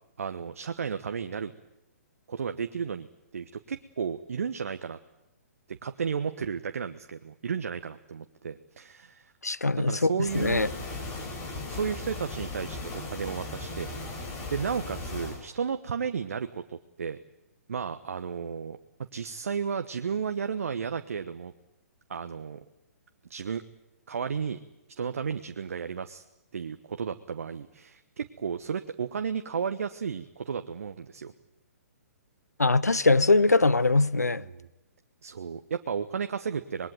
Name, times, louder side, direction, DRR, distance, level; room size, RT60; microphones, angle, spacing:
voice 1, 0.2-1.5 2.3-3.1 3.3-5.0 5.7-9.3 9.8-10.7 11.7-14.2 14.5-17.2 17.7-21.5 22.1-22.6 23.3-23.6 24.1-24.6 25.0-26.2 26.5-31.3 34.4-34.7 35.2-36.9, right 6 dB, 60° right, 1.2 m, -33 dB
voice 2, 9.4-10.1 10.3-10.7 32.6-34.4, left 3 dB, 85° left, 0.9 m, -22 dB
sound 1, 10.2-15.4, left 2 dB, 30° left, 6.4 m, -37 dB
26.0 x 21.0 x 9.1 m
figure-of-eight pair, 125°, 8 cm